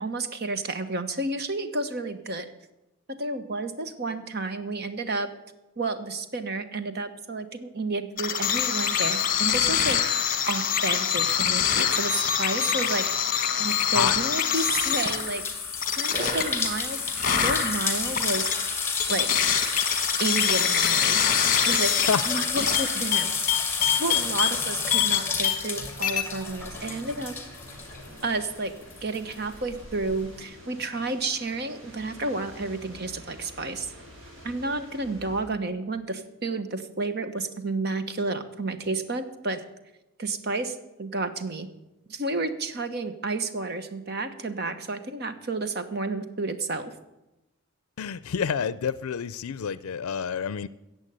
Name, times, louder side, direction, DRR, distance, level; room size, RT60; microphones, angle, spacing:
voice 1, 0.0-2.5 3.1-5.3 5.8-10.0 10.5-13.1 13.6-15.4 16.0-17.0 17.4-18.5 19.1-19.3 20.2-21.3 21.6-22.0 22.2-27.4 28.2-28.7 29.0-33.9 34.4-39.6 40.2-41.7 42.1-46.9, right 3 dB, 50° right, 10 dB, 1.2 m, -31 dB
sound 1, 8.2-25.8 26.0-26.2, left 8 dB, 40° left, 1.3 m, -25 dB
sound 2, 14.5-28.6 28.9-30.1, left 5 dB, 10° left, 2.1 m, -30 dB
sound 3, 26.4-35.4, equal, 70° right, 5.2 m, -48 dB
voice 2, 48.0-50.7, left 7 dB, 90° left, 17 dB, 0.4 m, -28 dB
14.5 x 8.2 x 8.9 m, 0.96 s
head